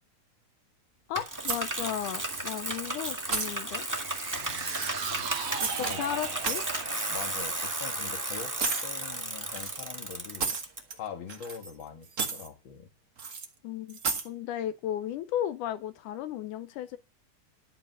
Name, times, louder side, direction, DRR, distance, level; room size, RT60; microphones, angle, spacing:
voice 1, 1.1-3.8 5.6-6.6 13.6-14.0 14.3-17.0, left 11 dB, 85° left, 2.3 m, -34 dB
Bicycle, 1.1-10.8, right 1 dB, 15° right, 0.6 m, -34 dB
sound 1, 1.4-2.0 2.3-2.7 3.0-3.5 4.6-5.9 6.2-6.8 7.6-7.8 8.6-8.9 9.5-11.0 11.3-11.8 12.1-12.5 13.2-13.5 13.9-14.3, right 5 dB, 50° right, 0.9 m, -33 dB
sound 2, 3.8-10.2 10.6-10.7, right 9 dB, 70° right, 1.2 m, -41 dB
voice 2, 4.3-5.4 5.8-6.2 7.1-10.5 10.9-12.9, left 7 dB, 45° left, 2.3 m, -43 dB
12.5 x 5.5 x 6.8 m
omnidirectional pair, 3.6 m